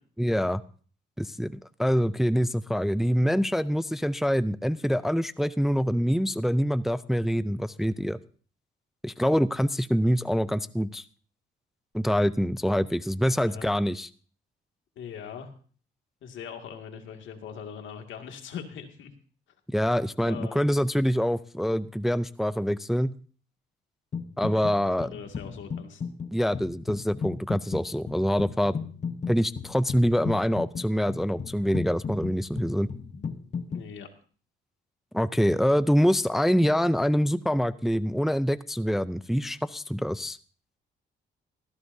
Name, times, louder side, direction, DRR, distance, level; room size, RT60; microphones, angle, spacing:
voice 1, 0.2-0.6 1.2-8.2 9.0-11.0 11.9-14.1 19.7-23.1 24.4-25.1 26.3-28.7 29.3-32.9 35.1-40.4, equal, ahead, 15 dB, 0.5 m, -25 dB
voice 2, 13.4-13.7 15.0-15.5 16.2-19.1 20.2-20.6 24.4-26.0 33.7-34.1, left 7 dB, 75° left, 5 dB, 2.2 m, -41 dB
sound 1, 24.1-24.8 25.0-33.9, left 6 dB, 35° left, 0.9 m, -36 dB
17.5 x 14.5 x 2.7 m, 0.42 s
cardioid pair, 90°, 20 cm